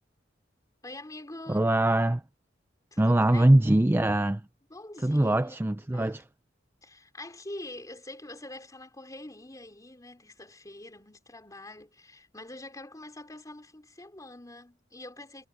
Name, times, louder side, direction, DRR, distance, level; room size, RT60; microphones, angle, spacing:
voice 1, 0.8-1.7 2.9-3.5 4.7-6.2 6.8-15.5, left 1 dB, 20° left, 3.6 m, -45 dB
voice 2, 1.5-2.2 3.0-4.4 5.0-6.2, right 1 dB, 10° right, 0.4 m, -22 dB
head